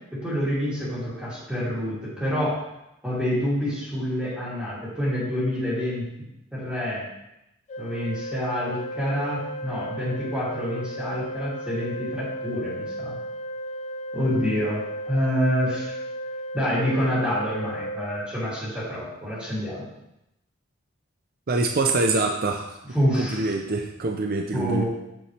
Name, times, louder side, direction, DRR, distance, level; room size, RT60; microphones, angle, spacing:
voice 1, 0.1-2.6 3.0-6.0 6.5-7.1 7.8-13.1 14.1-16.0 16.5-19.9 22.9-23.5 24.5-24.8, equal, 5° right, -10 dB, 2.8 m, -27 dB
Organ, 7.7-18.7, equal, 35° left, 0.5 m, -35 dB
voice 2, 21.5-22.8 23.2-24.8, right 3 dB, 50° right, 3 dB, 0.6 m, -25 dB
7.7 x 7.1 x 3.3 m, 0.87 s
head